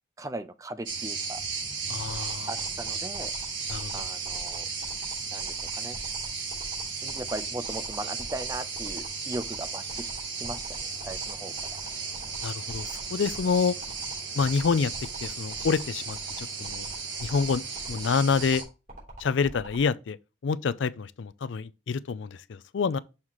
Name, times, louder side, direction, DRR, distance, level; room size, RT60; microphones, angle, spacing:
voice 1, 0.2-1.4 2.5-3.3 3.9-4.7 5.3-6.0 7.0-11.5, right 2 dB, 15° right, 0.4 m, -38 dB
sound 1, 0.9-18.6, right 5 dB, 75° right, 1.7 m, -35 dB
voice 2, 1.9-2.5 3.7-3.9 12.4-13.7 14.3-14.9 15.2-16.9 17.2-17.6 17.9-18.6 19.2-20.2 20.4-23.0, left 5 dB, 70° left, 0.4 m, -27 dB
sound 2, 2.0-19.8, right 2 dB, 45° right, 3.4 m, -44 dB
6.5 x 5.5 x 3.0 m
head